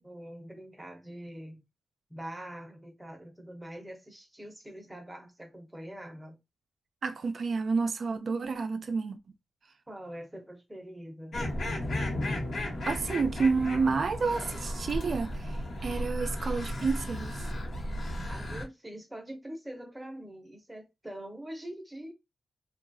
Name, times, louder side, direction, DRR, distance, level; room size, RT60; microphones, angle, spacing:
voice 1, 0.0-1.6 2.1-6.4 9.9-11.4 18.3-22.1, right 1 dB, 10° right, 0.7 m, -44 dB
voice 2, 7.0-9.2 12.9-17.4, right 4 dB, 50° right, 0.4 m, -30 dB
sound 1, 11.3-18.6, left 1 dB, 55° left, 1.1 m, -34 dB
2.9 x 2.3 x 2.6 m
wide cardioid pair, 145°, 0 cm